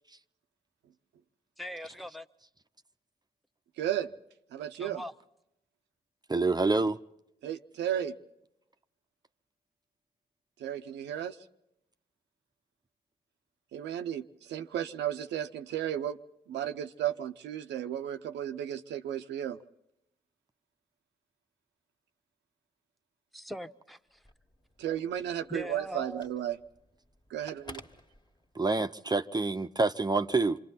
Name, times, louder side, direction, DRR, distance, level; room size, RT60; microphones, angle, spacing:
voice 1, 1.6-2.3 4.7-5.1 23.3-24.2 25.5-26.2, equal, ahead, 1.1 m, -41 dB
voice 2, 3.8-4.1 4.5-5.0 7.4-8.1 10.6-11.4 13.7-16.2 16.5-19.6 24.8-26.6 27.3-27.8, right 10 dB, 90° right, 0.7 m, -34 dB
voice 3, 6.3-7.0 28.6-30.6, right 3 dB, 25° right, 0.7 m, -27 dB
Telephone, 24.1-28.9, left 1 dB, 25° left, 1.9 m, -54 dB
28.0 x 25.0 x 4.0 m
supercardioid pair, 40°, 18 cm